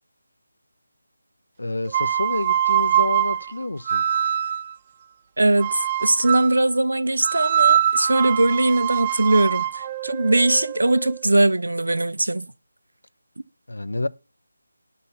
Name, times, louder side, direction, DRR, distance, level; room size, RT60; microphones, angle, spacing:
voice 1, 1.6-4.0 13.7-14.1, left 2 dB, 85° left, 0.8 m, -28 dB
sound 1, 1.9-4.7 5.6-6.6 7.2-11.2, right 10 dB, 25° right, 0.5 m, -23 dB
voice 2, 5.4-12.5, right 2 dB, 85° right, 0.8 m, -20 dB
11.5 x 4.2 x 7.2 m
figure-of-eight pair, 165°, 0 cm